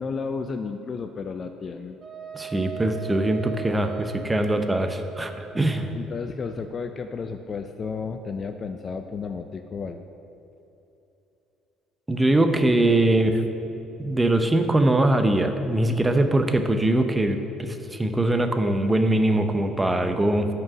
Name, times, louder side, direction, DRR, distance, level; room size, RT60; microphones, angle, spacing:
voice 1, 0.0-2.0 5.9-10.0, left 5 dB, 40° left, 7 dB, 0.4 m, -32 dB
Wind instrument woodwind instrument, 2.0-5.6, right 8 dB, 50° right, 1.6 m, -38 dB
voice 2, 2.3-5.9 12.1-13.4 14.0-20.5, right 1 dB, 15° right, 7 dB, 0.6 m, -22 dB
6.0 x 4.6 x 6.0 m, 2.9 s
supercardioid pair, 75°, 0 cm